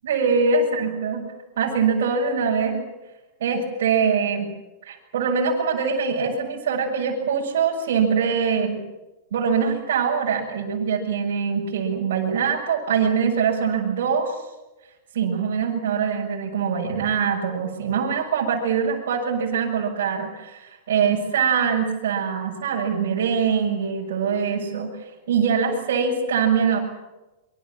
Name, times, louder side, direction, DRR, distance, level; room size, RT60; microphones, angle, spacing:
voice 1, 0.0-1.2 1.5-2.8 3.4-4.5 4.8-8.8 9.3-14.4 15.1-26.8, right 6 dB, 70° right, -4 dB, 6.9 m, -23 dB
26.0 x 25.0 x 7.6 m, 1.1 s
hypercardioid pair, 110°, 0 cm